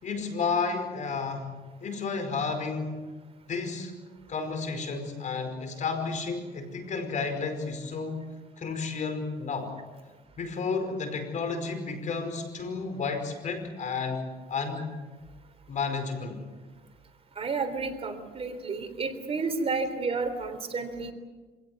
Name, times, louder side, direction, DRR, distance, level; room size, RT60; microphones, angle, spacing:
voice 1, 0.0-1.5 1.8-3.1 3.5-3.9 4.3-8.3 8.6-9.7 10.4-15.0 15.7-16.4, left 4 dB, 45° left, 7 dB, 5.1 m, -32 dB
voice 2, 17.4-21.1, right 4 dB, 35° right, 7 dB, 3.6 m, -31 dB
26.5 x 17.0 x 9.5 m, 1.3 s
cardioid pair, 110°, 17 cm